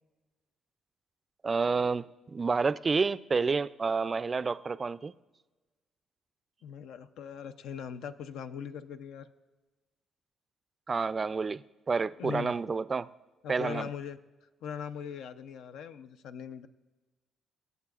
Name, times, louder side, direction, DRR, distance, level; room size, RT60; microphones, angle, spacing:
voice 1, 1.4-5.1 10.9-11.6 11.9-13.1 13.5-13.9, right 4 dB, 35° right, 0.3 m, -29 dB
voice 2, 6.6-9.3 12.2-12.5 13.4-14.2 14.6-16.7, left 7 dB, 85° left, 0.5 m, -40 dB
23.0 x 8.1 x 2.4 m
cardioid pair, 90°, 0 cm